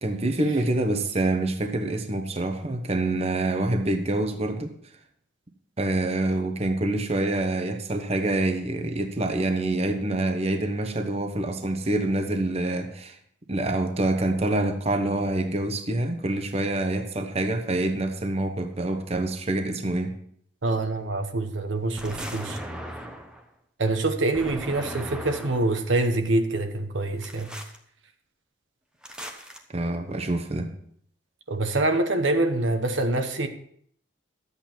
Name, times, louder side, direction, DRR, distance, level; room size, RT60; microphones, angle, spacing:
voice 1, 0.0-4.7 5.8-13.2 13.5-20.1 29.7-30.7, right 2 dB, 35° right, 1.0 m, -26 dB
voice 2, 20.6-22.6 23.8-27.5 31.5-33.5, right 2 dB, 75° right, 1.0 m, -25 dB
sound 1, 22.0-23.4 24.3-25.8 27.2-27.8 29.0-29.6, equal, 5° right, 1.0 m, -38 dB
12.0 x 8.3 x 4.4 m
head